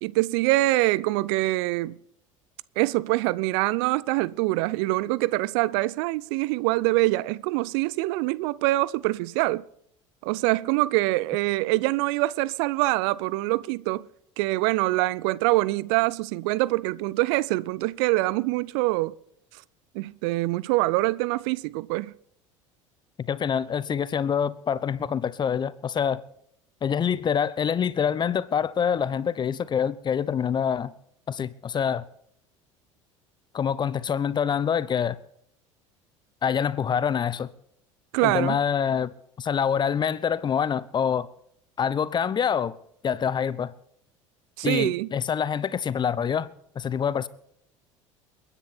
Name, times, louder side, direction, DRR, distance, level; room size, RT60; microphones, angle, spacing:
voice 1, 0.0-2.0 2.8-9.6 10.2-14.1 14.4-19.2 19.9-22.1 38.1-38.6 44.6-45.1, right 20 dB, 55° right, 0.5 m, -24 dB
voice 2, 23.2-26.2 26.8-30.9 31.3-32.0 33.5-35.2 36.4-37.5 38.2-41.3 41.8-42.8 43.0-43.7 44.6-46.5 46.7-47.3, left 7 dB, 30° left, 0.9 m, -26 dB
29.5 x 9.9 x 4.3 m
figure-of-eight pair, 65°, 16 cm